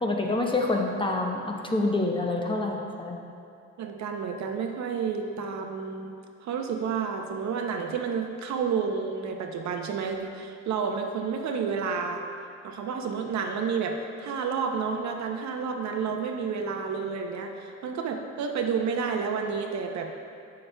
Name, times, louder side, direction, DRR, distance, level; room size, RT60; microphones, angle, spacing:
voice 1, 0.0-3.2, left 2 dB, 15° left, 0 dB, 0.7 m, -27 dB
voice 2, 3.8-6.2 6.4-12.2 12.6-20.1, right 6 dB, 65° right, 3 dB, 0.7 m, -30 dB
8.4 x 6.6 x 2.2 m, 2.6 s
cardioid pair, 90°, 30 cm